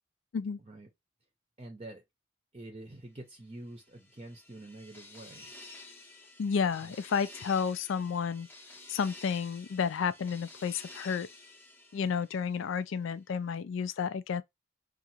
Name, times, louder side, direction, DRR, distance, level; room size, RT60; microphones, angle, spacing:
voice 1, 0.6-0.9 1.6-2.0 2.5-5.5 6.8-6.9, right 2 dB, 30° right, 0.7 m, -47 dB
sound 1, 3.7-12.8, left 2 dB, 10° left, 0.7 m, -51 dB
voice 2, 6.4-8.5 8.9-11.3 11.9-14.4, left 6 dB, 65° left, 0.4 m, -31 dB
3.8 x 2.4 x 4.2 m
head